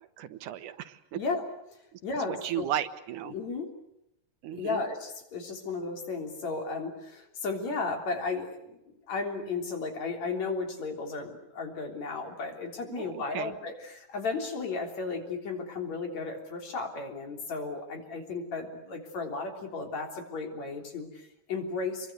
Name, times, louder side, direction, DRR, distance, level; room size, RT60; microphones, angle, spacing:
voice 1, 0.2-1.2 1.9-2.0 2.3-3.4 4.4-4.8 12.9-13.5, right 11 dB, 80° right, 11 dB, 2.7 m, -35 dB
voice 2, 1.1-1.4 2.0-2.7 3.3-3.7 4.5-22.1, left 4 dB, 60° left, 4 dB, 4.7 m, -34 dB
27.0 x 23.0 x 8.1 m, 0.83 s
omnidirectional pair, 3.5 m